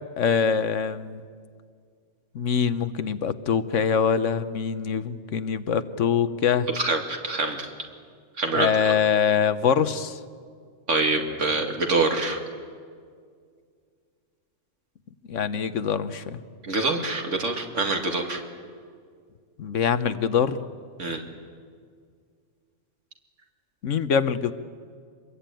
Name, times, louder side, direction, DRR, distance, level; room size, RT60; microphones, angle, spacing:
voice 1, 0.2-1.2 2.3-6.7 8.5-10.2 15.3-16.4 19.6-20.6 23.8-24.5, left 7 dB, 80° left, 12 dB, 1.3 m, -24 dB
voice 2, 6.7-7.7 8.4-8.9 10.9-12.4 16.6-18.4 21.0-21.2, right 3 dB, 75° right, 3 dB, 2.7 m, -25 dB
26.0 x 21.5 x 9.1 m, 2.1 s
omnidirectional pair, 1.3 m